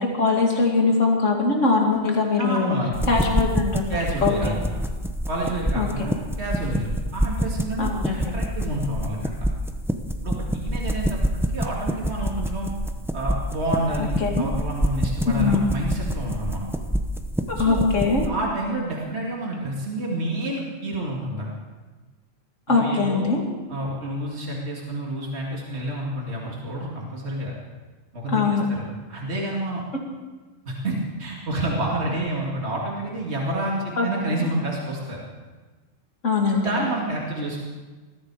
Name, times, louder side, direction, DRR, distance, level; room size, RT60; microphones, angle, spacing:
voice 1, 0.0-2.7 3.1-4.6 5.7-5.9 7.8-8.2 14.0-14.5 15.3-15.6 17.5-18.2 22.7-23.4 28.3-28.6 34.0-34.4 36.2-36.7, left 4 dB, 75° left, 0 dB, 2.8 m, -22 dB
voice 2, 2.4-3.3 3.9-4.8 5.3-9.3 10.2-12.7 13.1-16.7 17.6-17.8 18.3-21.6 22.7-23.3 23.7-27.6 28.1-28.4 28.7-29.8 30.7-35.2 36.5-37.6, right 1 dB, 55° right, -3 dB, 2.7 m, -29 dB
sound 1, 2.9-18.3, equal, ahead, 0.6 m, -27 dB
21.0 x 14.0 x 4.9 m, 1.3 s
omnidirectional pair, 1.3 m